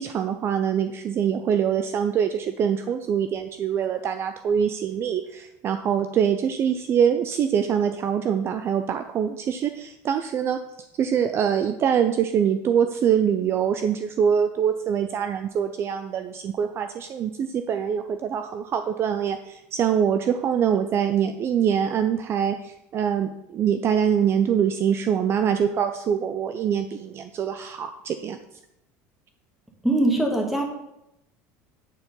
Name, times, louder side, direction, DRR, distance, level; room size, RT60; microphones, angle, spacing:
voice 1, 0.0-10.6 11.0-28.4, right 8 dB, 40° right, 8 dB, 0.5 m, -24 dB
voice 2, 29.8-30.6, right 1 dB, 5° right, 1 dB, 1.7 m, -21 dB
8.9 x 4.5 x 5.3 m, 0.86 s
supercardioid pair, 125°, 7 cm